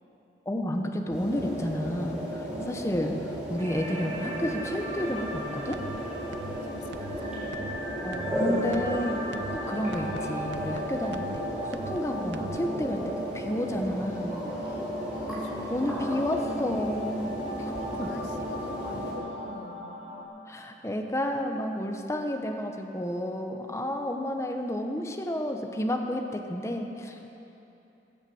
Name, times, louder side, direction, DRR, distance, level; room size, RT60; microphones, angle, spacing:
voice 1, 0.5-5.8 8.0-9.2 9.5-13.0 13.3-14.4 15.7-17.3 17.6-17.7 18.0-18.1 20.5-27.3, left 1 dB, 15° left, 3 dB, 0.9 m, -31 dB
sound 1, 1.1-19.1, equal, 5° right, 4.3 m, -35 dB
sound 2, 3.6-20.2, equal, 40° right, 3.1 m, -38 dB
sound 3, 5.3-5.4 5.7-6.0 6.3-6.6 6.9-7.2 7.5-7.8 8.1-8.4 8.7-9.0 9.3-9.6 9.9-10.2 10.5-10.8 11.1-11.4 11.7-12.0 12.3-12.6, right 5 dB, 75° right, 0.5 m, -41 dB
voice 2, 6.2-7.7 14.5-16.0 17.2-19.9 27.2-27.3, left 3 dB, 70° left, 8 dB, 0.6 m, -46 dB
19.0 x 7.2 x 8.0 m, 2.9 s
head